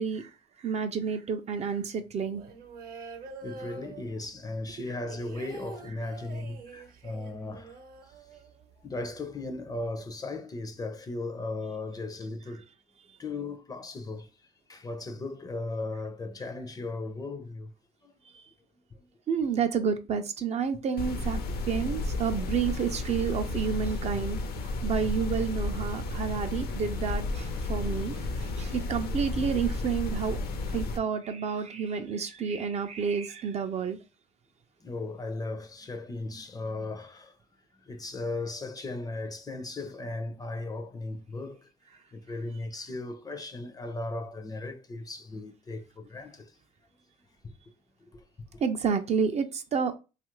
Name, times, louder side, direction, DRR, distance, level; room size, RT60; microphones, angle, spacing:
voice 1, 0.0-2.4 4.8-4.9 18.3-18.4 19.3-21.4 21.7-30.4 30.7-34.0 48.6-49.9, right 6 dB, 40° right, 0.4 m, -30 dB
sound 1, 2.3-4.5 4.8-8.7 9.0-9.1 9.4-9.9, right 3 dB, 60° right, 0.8 m, -45 dB
voice 2, 3.3-7.8 8.8-12.7 13.2-14.3 14.7-17.7 18.0-18.1 18.9-19.0 27.7-28.1 34.8-37.4 37.9-41.7 42.1-46.6 47.4-47.5 48.1-48.2 48.5-48.6, left 2 dB, 20° left, 0.5 m, -37 dB
sound 2, 21.0-31.0, left 2 dB, 65° left, 0.7 m, -32 dB
3.0 x 2.4 x 3.0 m
cardioid pair, 110°, 17 cm